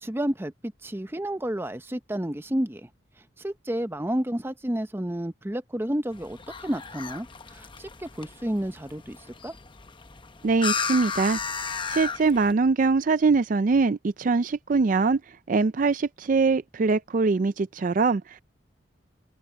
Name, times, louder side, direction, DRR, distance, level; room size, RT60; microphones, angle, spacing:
voice 1, 0.0-2.9 3.4-9.2 9.4-9.6, right 1 dB, 10° right, 0.7 m, -31 dB
sound 1, 6.1-12.5, left 5 dB, 25° left, 0.8 m, -34 dB
voice 2, 10.4-11.4 11.9-15.2 15.5-18.4, right 4 dB, 45° right, 0.4 m, -23 dB
head